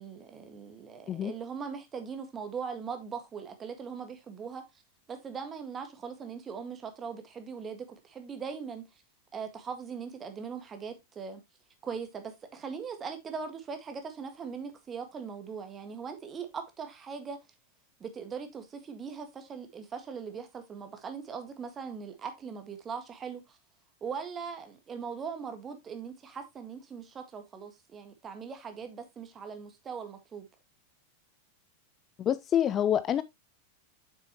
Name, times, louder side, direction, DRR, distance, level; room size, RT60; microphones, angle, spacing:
voice 1, 0.0-4.6 5.1-8.8 9.3-11.4 11.8-17.4 18.0-23.6 24.0-30.5, right 6 dB, 20° right, 1.7 m, -40 dB
voice 2, 32.2-33.2, left 10 dB, 30° left, 0.4 m, -27 dB
7.6 x 6.4 x 3.0 m
figure-of-eight pair, 90°, 0 cm